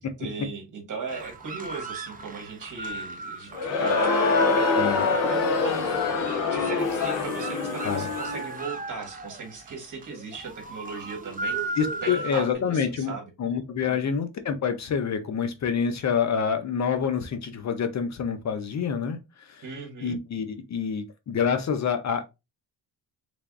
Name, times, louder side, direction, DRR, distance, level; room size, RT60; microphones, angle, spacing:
voice 1, 0.2-4.0 4.5-4.9 5.3-6.0 6.5-13.3 13.9-14.1 19.6-20.2, right 4 dB, 50° right, 1.5 m, -38 dB
sound 1, 1.1-12.5, right 3 dB, 20° right, 0.4 m, -37 dB
Crowd, 3.5-8.5, left 4 dB, 85° left, 1.1 m, -25 dB
voice 2, 4.8-5.1 7.8-8.1 11.8-13.1 13.4-19.6 20.0-22.2, left 6 dB, 45° left, 0.5 m, -27 dB
3.4 x 3.3 x 2.5 m
cardioid pair, 125°, 41 cm